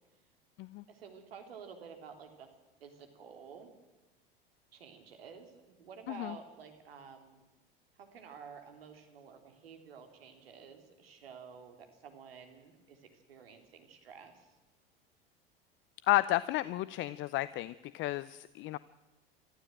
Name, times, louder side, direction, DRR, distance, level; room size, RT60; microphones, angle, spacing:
voice 1, 0.9-2.5 2.8-3.7 4.7-7.4 8.0-14.5, right 6 dB, 75° right, 6 dB, 3.4 m, -51 dB
voice 2, 16.1-18.8, left 16 dB, 40° left, 18 dB, 0.6 m, -32 dB
23.5 x 14.5 x 9.0 m, 1.1 s
figure-of-eight pair, 80°, 30 cm